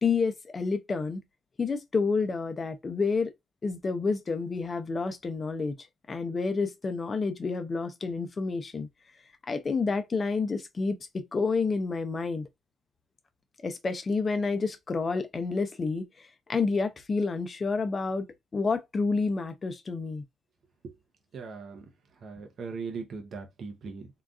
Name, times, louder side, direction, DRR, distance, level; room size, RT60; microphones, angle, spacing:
voice 1, 0.0-1.2 1.6-3.3 3.6-5.8 6.1-8.9 9.5-12.5 13.6-16.1 16.5-18.3 18.5-20.2, left 4 dB, 35° left, 0.6 m, -29 dB
voice 2, 21.3-21.9 22.2-24.1, right 5 dB, 60° right, 0.7 m, -39 dB
3.8 x 2.3 x 2.4 m
cardioid pair, 90°, 0 cm